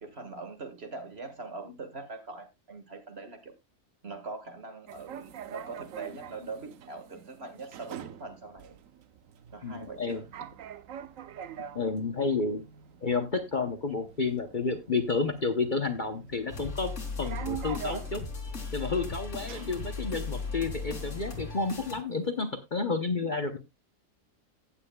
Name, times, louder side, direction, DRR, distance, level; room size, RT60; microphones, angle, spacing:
voice 1, 0.0-3.5 4.0-8.8 9.5-10.3, right 3 dB, 45° right, 2.0 m, -42 dB
sound 1, 4.9-22.4, right 9 dB, 70° right, 1.1 m, -46 dB
voice 2, 9.6-10.2 11.7-12.6 13.0-16.9 17.2-18.2 18.7-23.6, left 4 dB, 40° left, 0.9 m, -30 dB
sound 2, 16.5-22.0, left 4 dB, 55° left, 3.2 m, -37 dB
15.5 x 9.0 x 2.3 m
omnidirectional pair, 1.5 m